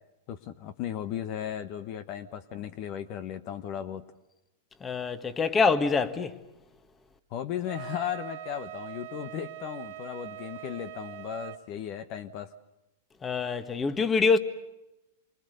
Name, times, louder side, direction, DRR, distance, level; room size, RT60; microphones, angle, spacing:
voice 1, 0.3-4.0 7.3-12.5, left 10 dB, 45° left, 1.2 m, -36 dB
voice 2, 4.8-6.4 13.2-14.4, left 4 dB, 20° left, 1.6 m, -25 dB
Wind instrument woodwind instrument, 7.6-11.6, right 14 dB, 60° right, 2.0 m, -42 dB
28.0 x 24.5 x 6.8 m
hypercardioid pair, 130°, 0 cm